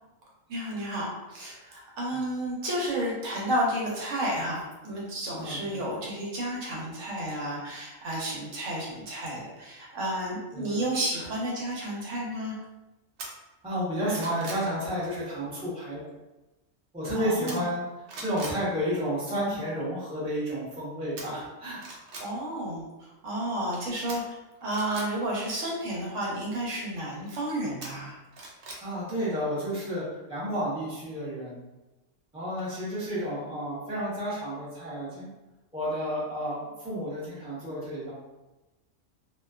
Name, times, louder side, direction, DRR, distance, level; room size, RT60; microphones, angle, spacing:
voice 1, 0.5-12.5 17.1-17.7 22.2-24.2 24.6-28.2, right 1 dB, 80° right, -4 dB, 1.0 m, -31 dB
voice 2, 5.3-5.8 10.5-10.8 11.1-11.2 13.6-16.0 16.9-17.8 18.2-21.8 28.8-31.6 32.3-35.3 35.7-38.1, equal, 5° right, -9 dB, 0.6 m, -31 dB
sound 1, 13.2-13.3 13.8-14.7 17.5-17.8 18.1-18.6 21.2-21.3 21.8-22.3 24.1-25.1 27.8-28.8 29.2-29.3, right 2 dB, 60° right, 0.6 m, -40 dB
2.4 x 2.2 x 2.3 m, 1.0 s
omnidirectional pair, 1.3 m